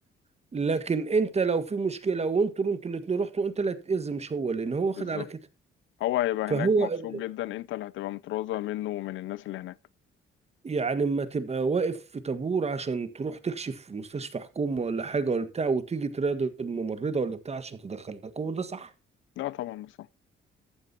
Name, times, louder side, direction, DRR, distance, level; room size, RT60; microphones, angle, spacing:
voice 1, 0.5-5.4 6.5-7.2 10.6-18.9, right 4 dB, 30° right, 1.6 m, -28 dB
voice 2, 5.0-5.3 6.0-9.8 19.4-19.9, left 15 dB, 80° left, 0.5 m, -32 dB
14.5 x 9.0 x 2.9 m
cardioid pair, 90°, 20 cm